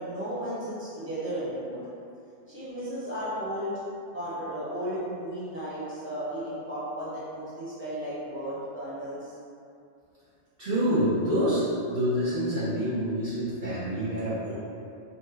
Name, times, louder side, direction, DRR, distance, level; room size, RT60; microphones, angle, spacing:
voice 1, 0.0-1.8 2.5-3.7 4.1-9.2, right 1 dB, 10° left, -12 dB, 0.7 m, -34 dB
voice 2, 10.6-14.5, equal, 45° right, -12 dB, 0.8 m, -27 dB
3.1 x 2.1 x 3.3 m, 2.5 s
omnidirectional pair, 1.3 m